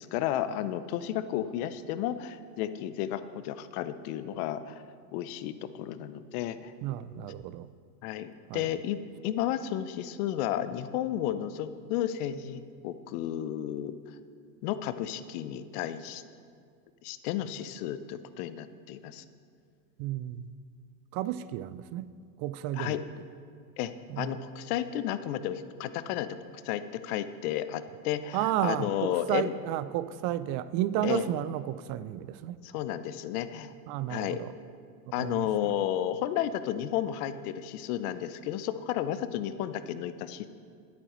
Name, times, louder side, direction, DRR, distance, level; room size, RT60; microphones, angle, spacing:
voice 1, 0.0-4.8 5.1-6.7 8.0-14.0 14.6-16.2 17.0-19.2 22.8-23.0 23.8-26.4 26.6-29.5 31.0-31.3 32.6-33.7 34.1-34.4 35.1-40.5, left 11 dB, 65° left, 12 dB, 0.8 m, -32 dB
voice 2, 6.8-7.7 8.5-8.7 20.0-20.5 21.1-22.1 22.4-23.0 24.1-24.4 28.3-32.6 33.9-34.5 35.2-35.7, right 12 dB, 50° right, 15 dB, 0.5 m, -32 dB
20.5 x 8.5 x 3.1 m, 2.2 s
supercardioid pair, 105°, 48 cm